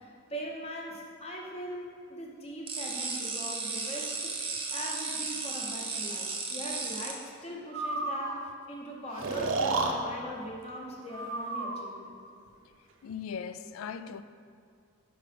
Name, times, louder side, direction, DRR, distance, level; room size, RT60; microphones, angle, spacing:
voice 1, 0.0-4.3 4.7-12.2, equal, 30° left, 0.9 m, -41 dB
sound 1, 2.7-7.1, right 4 dB, 25° right, 0.7 m, -35 dB
Breathing, 7.7-8.4 9.2-9.9 11.1-11.9, right 3 dB, 70° right, 0.6 m, -31 dB
voice 2, 13.0-14.2, left 7 dB, 80° left, 0.3 m, -38 dB
5.7 x 5.3 x 5.0 m
head